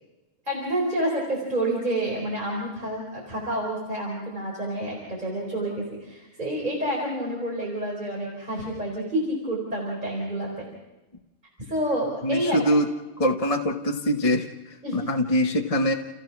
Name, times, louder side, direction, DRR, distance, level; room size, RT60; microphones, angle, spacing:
voice 1, 0.4-10.6 11.6-12.6 14.8-15.0, right 1 dB, 35° right, -4 dB, 4.7 m, -29 dB
voice 2, 12.2-12.9 13.2-14.5 14.9-15.9, equal, 30° left, 3 dB, 1.1 m, -23 dB
30.0 x 15.5 x 6.0 m, 1.1 s
omnidirectional pair, 1.3 m